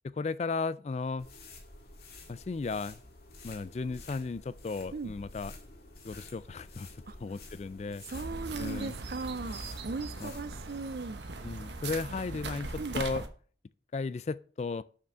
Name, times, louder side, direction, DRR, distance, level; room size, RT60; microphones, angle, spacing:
voice 1, 0.0-1.3 2.3-3.0 3.4-5.5 6.0-8.0 8.6-9.0 10.2-10.3 11.4-13.2 13.9-14.8, left 4 dB, 35° left, 0.3 m, -35 dB
sound 1, 1.2-10.8, left 2 dB, 60° left, 1.9 m, -50 dB
voice 2, 8.1-11.2 12.8-13.0, right 3 dB, 55° right, 0.5 m, -38 dB
sound 2, 8.1-13.3, right 3 dB, 80° right, 1.1 m, -39 dB
6.6 x 5.9 x 6.8 m
head